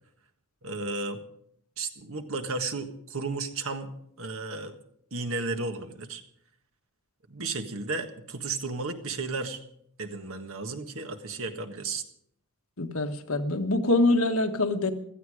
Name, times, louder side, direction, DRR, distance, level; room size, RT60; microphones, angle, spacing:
voice 1, 0.6-1.2 1.8-3.9 4.2-4.7 5.1-6.2 7.3-9.6 10.0-12.0, right 3 dB, 70° right, 7 dB, 1.6 m, -33 dB
voice 2, 12.8-14.9, left 2 dB, 70° left, 5 dB, 1.5 m, -24 dB
16.5 x 13.5 x 5.0 m, 0.69 s
head